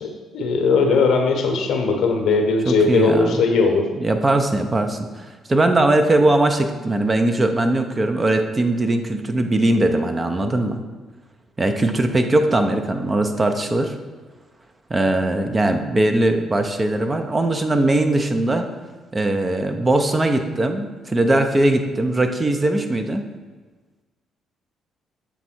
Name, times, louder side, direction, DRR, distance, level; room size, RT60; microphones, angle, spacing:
voice 1, 0.0-3.9, left 4 dB, 60° left, 3 dB, 0.8 m, -19 dB
voice 2, 2.7-3.4 4.0-10.8 11.6-13.9 14.9-18.7 19.1-23.2, right 2 dB, 30° right, 5 dB, 0.6 m, -20 dB
7.2 x 3.4 x 4.3 m, 1.3 s
hypercardioid pair, 45°, 0 cm